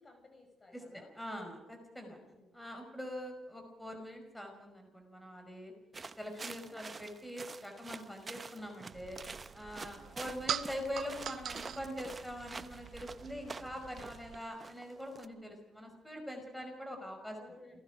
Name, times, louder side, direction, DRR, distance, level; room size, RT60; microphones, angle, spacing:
voice 1, 0.0-1.1 2.1-2.5 6.7-7.0 9.9-10.2 17.3-17.8, left 2 dB, 30° left, 4 dB, 5.7 m, -59 dB
voice 2, 0.7-2.2 2.5-5.7 6.2-9.2 9.5-17.4, equal, 5° left, 3 dB, 5.3 m, -43 dB
sound 1, 5.9-15.3, right 4 dB, 30° right, 1.0 m, -48 dB
sound 2, 8.9-14.4, right 9 dB, 65° right, 0.9 m, -44 dB
28.5 x 19.5 x 5.1 m, 1.0 s
cardioid pair, 90°, 0 cm